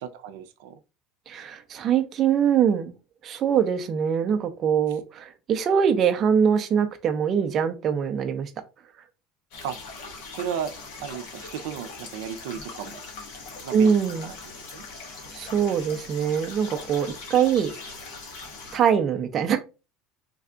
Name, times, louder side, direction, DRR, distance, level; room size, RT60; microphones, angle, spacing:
voice 1, 0.0-0.8 9.6-9.8 10.3-10.7 11.0-13.0 13.6-14.3 14.7-14.8, right 8 dB, 90° right, 0.4 m, -34 dB
voice 2, 1.3-2.9 3.2-8.5 13.7-14.3 15.3-17.7 18.7-19.6, right 7 dB, 30° right, 0.4 m, -23 dB
sound 1, 9.5-18.8, left 3 dB, 75° left, 1.2 m, -41 dB
3.3 x 2.3 x 3.7 m
cardioid pair, 170°, 0 cm